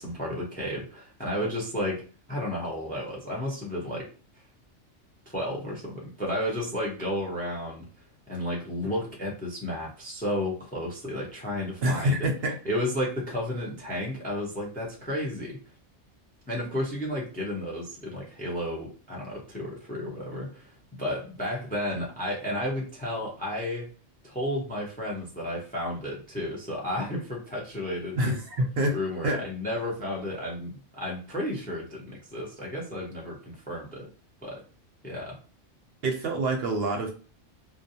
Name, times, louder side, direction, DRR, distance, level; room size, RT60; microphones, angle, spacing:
voice 1, 0.0-2.0 2.3-4.1 5.3-7.9 8.3-12.3 12.7-15.6 16.5-23.9 24.2-28.3 28.9-34.1 34.4-34.6 35.0-35.4, left 1 dB, 10° left, -2 dB, 0.4 m, -32 dB
voice 2, 11.8-12.6 28.2-29.0 29.2-29.4 36.0-37.1, right 1 dB, 65° right, 2 dB, 0.7 m, -26 dB
2.4 x 2.1 x 2.7 m, 0.38 s
omnidirectional pair, 1.2 m